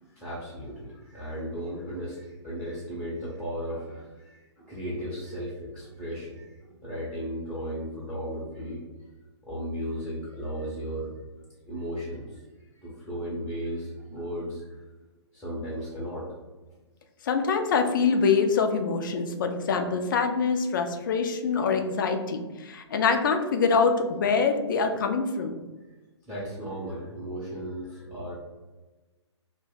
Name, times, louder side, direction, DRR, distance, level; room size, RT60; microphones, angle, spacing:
voice 1, 0.0-9.1 9.4-11.1 11.6-14.8 15.3-16.2 26.3-28.3, equal, ahead, -7 dB, 0.6 m, -35 dB
voice 2, 17.2-25.6, left 5 dB, 45° left, 6 dB, 0.4 m, -25 dB
2.5 x 2.1 x 3.7 m, 1.2 s
figure-of-eight pair, 125°, 15 cm